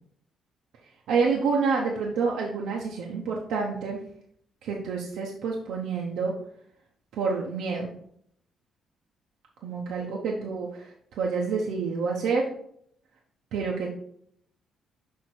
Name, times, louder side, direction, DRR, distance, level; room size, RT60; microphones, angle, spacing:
voice 1, 1.1-4.0 4.6-6.3 7.1-7.9 9.6-12.5 13.5-13.9, right 5 dB, 80° right, -2 dB, 0.9 m, -28 dB
6.4 x 3.7 x 4.3 m, 0.67 s
cardioid pair, 90°, 0 cm